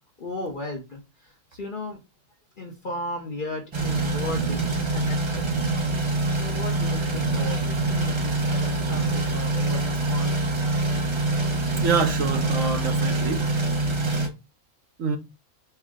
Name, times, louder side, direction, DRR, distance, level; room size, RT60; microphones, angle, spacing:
voice 1, 0.2-2.0 2.6-5.4 6.4-10.4, left 2 dB, 45° left, 0.8 m, -35 dB
sound 1, 3.7-14.3, right 2 dB, 45° right, 0.4 m, -25 dB
voice 2, 11.8-13.5 15.0-15.2, right 5 dB, 70° right, 1.1 m, -26 dB
4.4 x 2.1 x 3.5 m
omnidirectional pair, 1.5 m